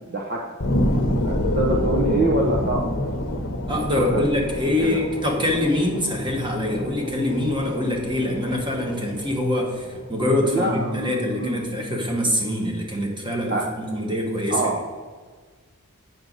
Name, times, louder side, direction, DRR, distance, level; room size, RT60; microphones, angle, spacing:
voice 1, 0.1-0.4 1.2-2.8 4.1-4.2 4.8-5.0 10.4-11.6 13.5-13.6 14.5-14.8, right 2 dB, 45° right, -1 dB, 0.8 m, -24 dB
sound 1, 0.6-11.6 12.1-12.2, left 1 dB, 60° left, 0.8 m, -28 dB
voice 2, 3.7-14.6, left 1 dB, 20° right, 0 dB, 1.3 m, -24 dB
7.7 x 6.1 x 4.0 m, 1.5 s
head